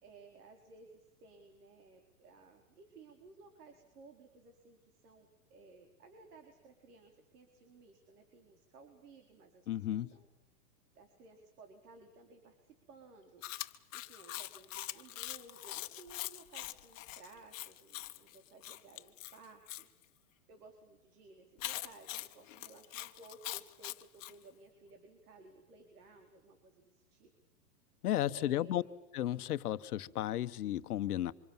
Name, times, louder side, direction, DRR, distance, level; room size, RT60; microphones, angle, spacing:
voice 1, 0.0-10.3 10.9-13.4 13.9-19.9 20.2-27.3 28.3-29.0, right 3 dB, 70° right, 4 dB, 4.6 m, -58 dB
voice 2, 9.7-10.1 28.0-28.8 29.1-31.3, left 12 dB, 70° left, 13 dB, 1.3 m, -33 dB
Chewing mastication, 13.4-19.8 21.6-24.3, left 15 dB, 55° left, 1.4 m, -43 dB
27.5 x 26.5 x 7.4 m, 0.92 s
hypercardioid pair, 155°, 47 cm